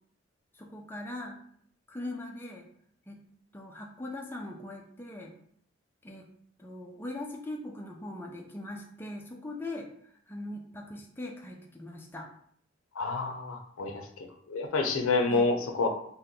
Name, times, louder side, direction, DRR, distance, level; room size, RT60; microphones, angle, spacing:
voice 1, 0.5-1.4 1.9-2.7 3.1-3.2 3.5-5.3 6.0-6.3 6.6-9.9 10.3-12.3 15.3-15.5, left 1 dB, 10° left, 0 dB, 0.4 m, -40 dB
voice 2, 12.9-15.9, left 3 dB, 85° left, 4 dB, 0.5 m, -29 dB
2.8 x 2.1 x 3.6 m, 0.63 s
head